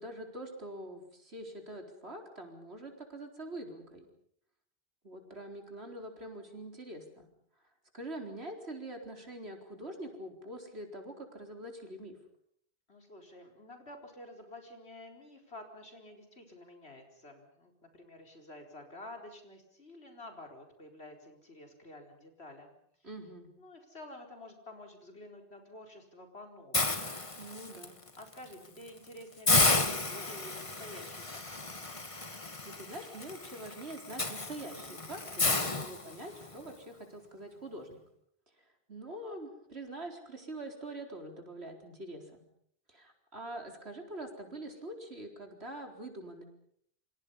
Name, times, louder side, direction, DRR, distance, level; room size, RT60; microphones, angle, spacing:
voice 1, 0.0-4.1 5.0-7.3 7.9-12.2 23.0-23.5 27.4-28.0 32.4-38.0 38.6-42.4 42.9-46.4, right 1 dB, 90° right, 3 dB, 4.6 m, -44 dB
voice 2, 12.9-22.7 23.6-27.0 27.4-27.5 28.2-31.7, left 1 dB, 90° left, 3 dB, 4.7 m, -50 dB
Hiss, 26.7-27.8 28.3-28.5 28.9-29.0 29.5-36.5, left 2 dB, 30° left, 1.7 m, -32 dB
28.0 x 25.5 x 5.6 m, 0.66 s
omnidirectional pair, 1.1 m